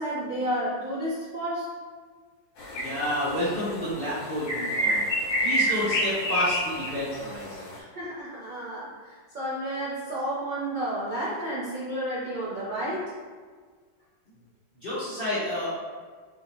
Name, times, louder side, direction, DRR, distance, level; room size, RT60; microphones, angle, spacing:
voice 1, 0.0-1.7 7.9-13.1, right 1 dB, 60° right, -9 dB, 0.5 m, -31 dB
sound 1, 2.6-7.8, equal, 75° left, 1.6 m, -29 dB
voice 2, 2.7-7.9 14.8-15.9, equal, 45° left, -11 dB, 0.7 m, -30 dB
3.8 x 3.3 x 2.6 m, 1.6 s
omnidirectional pair, 2.0 m